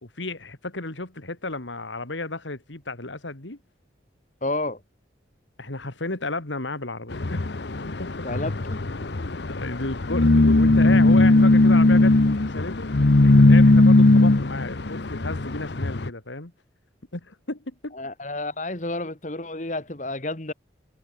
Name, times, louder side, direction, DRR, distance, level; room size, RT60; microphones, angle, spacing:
voice 1, 0.0-3.6 5.6-7.5 7.8-8.4 9.1-12.2 12.4-12.9 13.2-16.5 17.1-17.9, left 2 dB, 85° left, 2.7 m, -33 dB
voice 2, 4.4-4.8 8.2-8.8 17.9-20.5, left 2 dB, 40° left, 2.0 m, -30 dB
sound 1, 7.1-16.1, left 2 dB, 70° left, 1.0 m, -18 dB
head